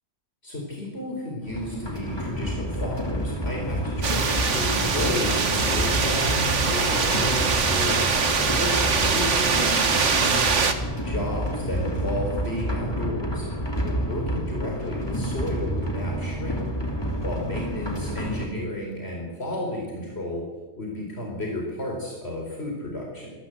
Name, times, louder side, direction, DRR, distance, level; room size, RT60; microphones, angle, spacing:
voice 1, 0.4-10.0 11.0-13.5 13.8-16.6 17.2-20.5 20.8-23.3, left 1 dB, 60° left, -1 dB, 4.7 m, -32 dB
sound 1, 1.4-18.5, equal, 20° left, 2.8 m, -29 dB
sound 2, 4.0-10.7, right 5 dB, 90° right, 1.9 m, -23 dB
25.5 x 14.0 x 8.3 m, 1.3 s
omnidirectional pair, 1.2 m